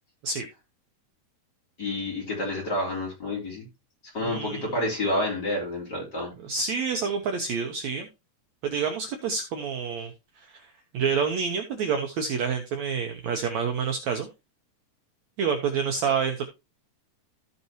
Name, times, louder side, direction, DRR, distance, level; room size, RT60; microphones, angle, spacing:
voice 1, 1.8-3.7 4.1-6.3, left 1 dB, 25° left, -2 dB, 4.0 m, -29 dB
voice 2, 4.2-4.7 6.4-8.1 8.6-10.1 10.5-14.3 15.4-16.4, right 6 dB, 80° right, 5 dB, 1.6 m, -28 dB
14.5 x 5.6 x 2.9 m, 0.24 s
omnidirectional pair, 4.6 m